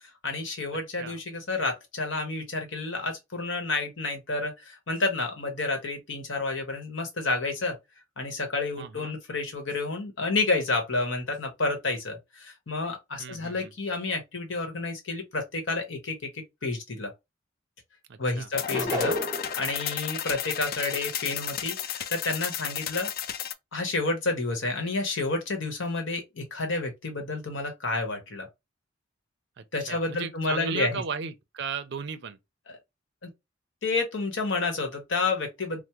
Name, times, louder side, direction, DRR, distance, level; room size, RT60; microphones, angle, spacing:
voice 1, 0.2-7.8 8.2-17.1 18.2-23.1 23.7-28.5 29.7-31.0 32.7-32.8 33.2-33.3 33.8-35.8, left 3 dB, 65° left, 1.1 m, -30 dB
voice 2, 8.8-9.2 13.2-13.7 18.1-18.5 29.6-32.4, right 6 dB, 60° right, 0.4 m, -36 dB
sound 1, 18.5-23.5, left 9 dB, 50° left, 0.3 m, -33 dB
sound 2, 18.7-19.6, left 1 dB, 20° right, 0.9 m, -29 dB
3.4 x 2.0 x 2.9 m
head